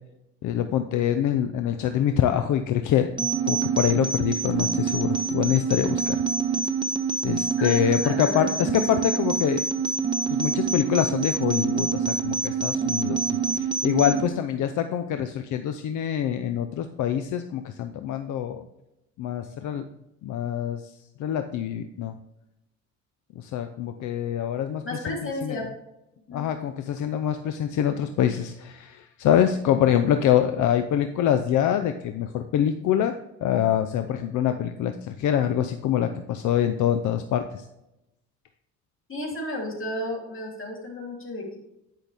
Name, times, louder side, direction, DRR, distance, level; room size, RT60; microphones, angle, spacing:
voice 1, 0.4-6.2 7.2-9.6 10.3-18.6 19.2-19.9 20.2-20.9 21.2-22.2 23.4-25.6 26.3-37.6, left 10 dB, 80° left, 8 dB, 0.6 m, -25 dB
sound 1, 3.2-14.2, right 5 dB, 15° right, 1.4 m, -26 dB
voice 2, 7.6-8.8 9.1-9.2 14.0-14.2 24.8-25.7 26.3-26.5 39.1-41.6, left 2 dB, 45° left, -1 dB, 3.3 m, -33 dB
10.5 x 5.8 x 3.5 m, 0.88 s
cardioid pair, 90°, 30 cm